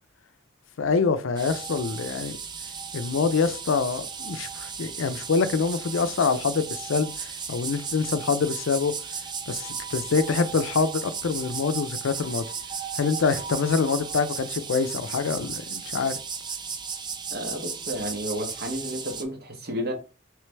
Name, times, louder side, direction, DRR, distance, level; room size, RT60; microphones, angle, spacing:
voice 1, 0.8-2.3 2.9-8.9 9.5-12.5 13.0-16.2, left 5 dB, 75° left, 0.4 m, -25 dB
sound 1, 1.4-19.2, right 6 dB, 25° right, 0.4 m, -35 dB
voice 2, 17.3-19.9, equal, 55° right, 1.0 m, -32 dB
3.3 x 3.2 x 3.3 m
head